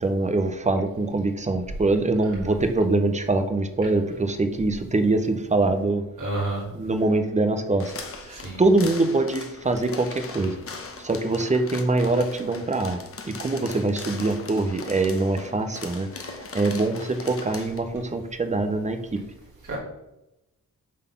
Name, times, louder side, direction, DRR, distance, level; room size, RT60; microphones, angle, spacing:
voice 1, 0.0-6.0 6.7-10.6 11.0-13.0 13.3-19.2, right 2 dB, 20° right, 8 dB, 0.6 m, -24 dB
voice 2, 2.1-2.6 3.8-3.9 6.2-6.6 8.3-8.6 19.6-19.8, right 2 dB, 60° right, -4 dB, 2.8 m, -31 dB
sound 1, 7.8-17.8, left 4 dB, 40° left, 0.9 m, -39 dB
7.4 x 4.1 x 5.5 m, 0.91 s
wide cardioid pair, 155°, 34 cm